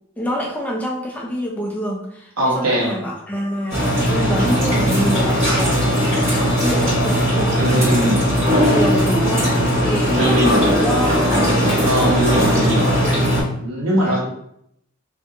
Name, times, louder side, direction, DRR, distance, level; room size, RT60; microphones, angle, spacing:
voice 1, 0.2-3.8 4.1-8.4 8.7-11.3 11.7-13.3 14.0-14.2, equal, 5° left, -1 dB, 0.3 m, -27 dB
voice 2, 2.4-2.9 7.5-8.2 10.1-10.7 11.8-13.0 13.6-14.2, right 1 dB, 85° right, -3 dB, 0.9 m, -20 dB
sound 1, 3.7-13.4, equal, 30° right, 1.4 m, -18 dB
2.7 x 2.5 x 2.4 m, 0.73 s
head